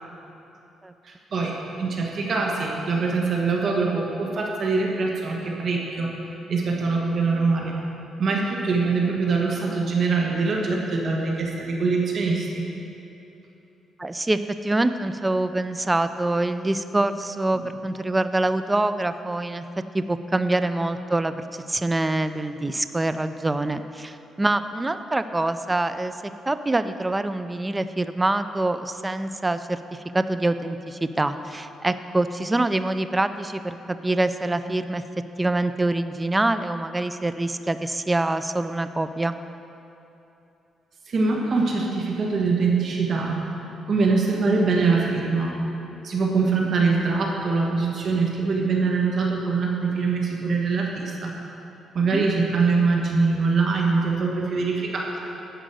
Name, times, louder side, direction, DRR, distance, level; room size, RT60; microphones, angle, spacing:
voice 1, 1.0-6.1 6.5-7.8 8.2-12.6 17.5-17.7 41.1-43.4 43.9-45.5 46.0-51.3 51.9-55.2, right 4 dB, 55° right, -1 dB, 1.4 m, -23 dB
voice 2, 14.0-19.6 19.9-26.2 26.5-35.0 35.4-39.4 52.1-52.2, right 2 dB, 15° right, 11 dB, 0.5 m, -25 dB
11.0 x 5.1 x 7.7 m, 2.9 s
cardioid pair, 90°, 0 cm